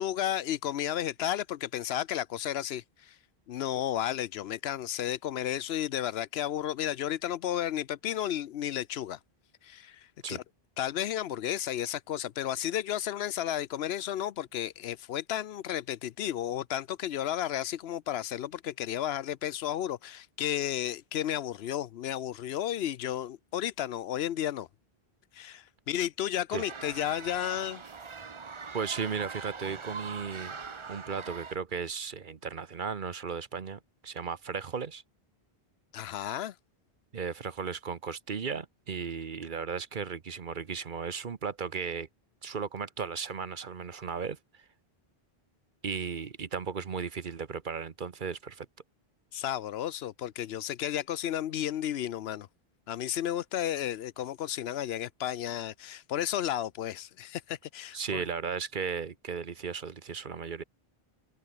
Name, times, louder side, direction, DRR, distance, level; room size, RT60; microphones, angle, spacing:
voice 1, 0.0-3.2 3.5-9.2 9.6-10.4 10.8-24.7 25.3-27.8 35.9-36.5 49.3-52.5 52.9-58.2, left 11 dB, 85° left, 0.9 m, -33 dB
sound 1, 26.5-31.6, right 5 dB, 35° right, 0.7 m, -42 dB
voice 2, 28.7-30.5 30.9-35.0 37.1-42.1 42.4-44.6 45.8-48.7 57.9-60.6, right 6 dB, 55° right, 1.1 m, -35 dB
omnidirectional pair, 1.0 m